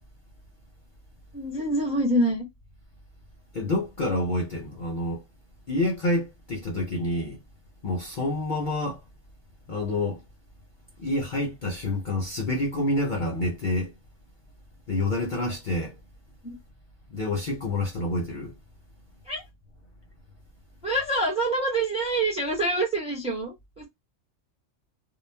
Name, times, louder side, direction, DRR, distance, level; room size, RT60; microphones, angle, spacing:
voice 1, 1.3-2.5 16.4-16.6 19.3-19.4 20.8-23.9, right 1 dB, 5° right, 0.6 m, -26 dB
voice 2, 3.5-5.2 5.7-7.4 7.8-9.0 9.7-10.2 11.0-13.9 14.9-16.0 17.1-18.5, left 1 dB, 50° left, 0.6 m, -28 dB
2.3 x 2.0 x 3.2 m
omnidirectional pair, 1.3 m